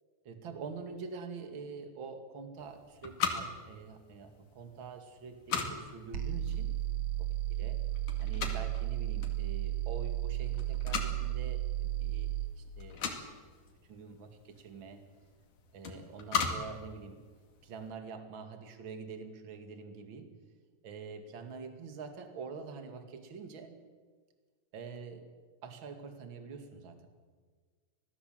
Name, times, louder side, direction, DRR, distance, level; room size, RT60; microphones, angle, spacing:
voice 1, 0.2-6.8 7.2-7.8 8.2-13.1 13.9-15.0 15.7-17.3 17.6-20.3 20.8-23.8 24.7-25.3 25.6-27.1, right 5 dB, 40° right, 6 dB, 2.0 m, -46 dB
sound 1, 2.6-17.9, left 6 dB, 50° left, 3.2 m, -40 dB
sound 2, 6.1-12.5, right 13 dB, 80° right, 1.3 m, -34 dB
26.0 x 17.5 x 7.7 m, 1.5 s
omnidirectional pair, 5.2 m